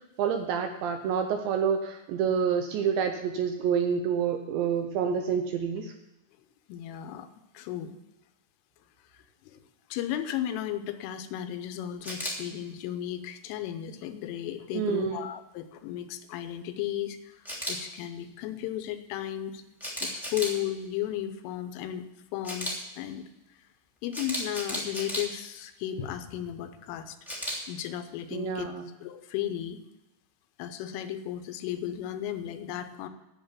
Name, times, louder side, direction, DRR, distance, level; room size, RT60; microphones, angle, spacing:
voice 1, 0.2-5.9 14.7-15.3 28.3-28.9, right 7 dB, 80° right, 5 dB, 2.6 m, -28 dB
voice 2, 6.7-7.3 7.5-8.0 9.1-9.6 9.9-19.6 20.0-22.1 22.3-23.3 24.0-27.2 27.7-28.7 29.0-29.8 30.6-33.1, left 11 dB, 80° left, 9 dB, 3.2 m, -35 dB
Camera, 12.0-12.3 17.4-17.7 19.8-20.5 22.4-22.7 24.1-25.2 27.3-27.6, equal, ahead, 1.2 m, -33 dB
10.5 x 8.0 x 7.4 m, 0.98 s
omnidirectional pair, 5.9 m